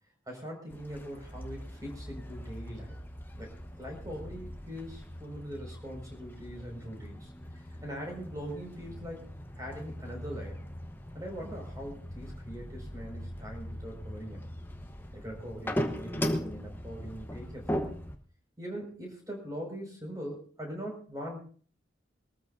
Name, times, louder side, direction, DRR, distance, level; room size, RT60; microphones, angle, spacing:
voice 1, 0.3-3.0 3.4-7.3 7.8-9.3 9.6-10.6 11.1-14.5 15.1-17.9 18.6-21.4, equal, 20° right, 1 dB, 5.5 m, -41 dB
sound 1, 0.7-18.2, equal, 10° left, 1.1 m, -39 dB
23.5 x 14.0 x 2.7 m, 0.43 s
head